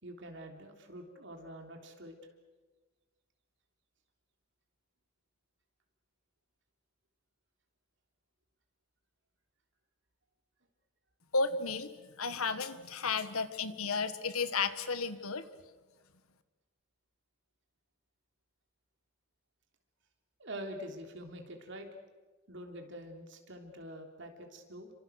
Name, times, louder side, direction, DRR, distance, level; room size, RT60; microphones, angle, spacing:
voice 1, 0.0-2.2 20.4-21.9 22.5-24.9, equal, 55° right, 4 dB, 3.5 m, -45 dB
voice 2, 11.3-15.5, left 4 dB, 90° left, 12 dB, 1.6 m, -33 dB
30.0 x 25.5 x 6.5 m, 1.3 s
head